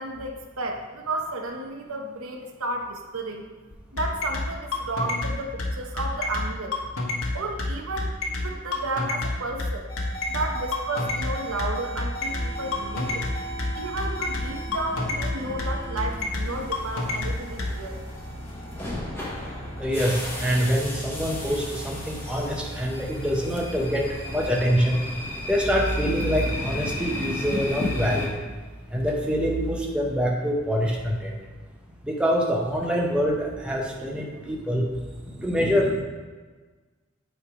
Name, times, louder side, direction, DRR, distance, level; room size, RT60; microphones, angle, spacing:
voice 1, 0.0-3.5 3.9-6.8 7.3-9.9 10.3-13.2 13.7-18.0, right 2 dB, 85° right, 2 dB, 0.9 m, -32 dB
sound 1, 3.7-17.7, left 2 dB, 85° left, 1.1 m, -28 dB
sound 2, 9.9-24.7 25.0-25.3 25.9-29.7, equal, 25° left, 0.9 m, -41 dB
sound 3, 12.2-28.3, left 1 dB, 10° left, 1.2 m, -35 dB
voice 2, 19.8-25.0 25.5-28.4 28.9-31.3 32.0-34.9 35.3-36.0, equal, 5° right, -2 dB, 0.8 m, -25 dB
8.1 x 3.3 x 4.8 m, 1.4 s
head